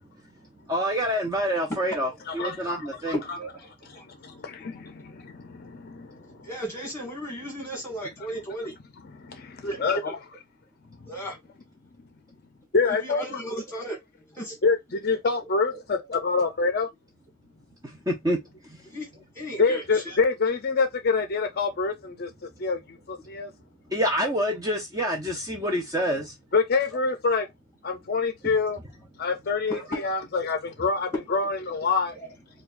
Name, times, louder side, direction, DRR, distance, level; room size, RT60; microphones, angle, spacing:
voice 1, 0.7-3.2 17.8-18.8 23.9-26.4 28.4-28.5, equal, 15° right, 0.5 m, -27 dB
voice 2, 2.3-3.4 4.1-6.5 9.2-10.1 11.0-11.1 12.7-13.2 14.6-16.9 19.6-22.3 22.6-23.5 26.5-27.5 27.8-28.8 29.2-32.2, left 4 dB, 45° left, 0.5 m, -26 dB
voice 3, 3.1-4.1 4.7-4.8 6.4-8.7 9.6-10.1 11.1-11.4 12.8-14.0 14.2-14.6 15.1-15.2 17.9-18.0 18.9-19.1 19.3-20.2 29.7-30.1 31.3-31.4 32.2-32.3, right 1 dB, 10° left, 1.4 m, -35 dB
4.5 x 2.3 x 2.4 m
head